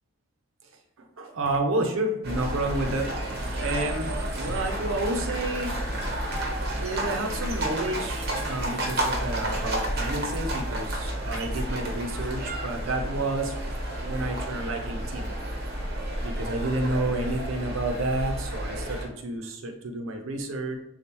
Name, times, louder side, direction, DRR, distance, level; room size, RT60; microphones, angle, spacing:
voice 1, 1.0-3.1 3.6-6.1 6.7-13.7 14.0-15.3 16.2-20.7, right 2 dB, 80° right, 4 dB, 0.7 m, -30 dB
sound 1, 2.2-19.1, right 1 dB, 50° right, 0.9 m, -31 dB
6.8 x 2.4 x 3.0 m, 0.86 s
head